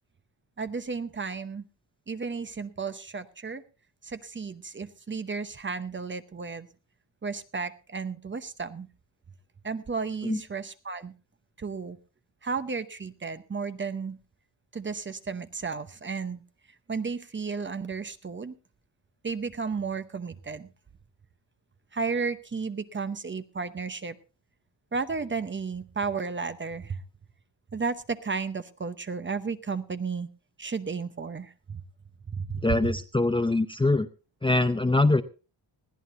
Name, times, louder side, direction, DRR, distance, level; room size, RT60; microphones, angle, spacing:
voice 1, 0.6-1.6 2.1-3.6 4.0-6.7 7.2-8.9 9.6-11.1 11.6-12.0 12.4-14.2 14.7-16.4 16.9-18.6 19.2-20.7 21.9-24.2 24.9-27.0 27.7-30.3 30.6-31.8 32.3-32.8, right 5 dB, 25° right, 11 dB, 0.9 m, -33 dB
voice 2, 32.6-34.1 34.4-35.2, left 2 dB, 10° left, 8 dB, 0.7 m, -23 dB
21.0 x 15.0 x 2.7 m, 0.32 s
cardioid pair, 125°, 44 cm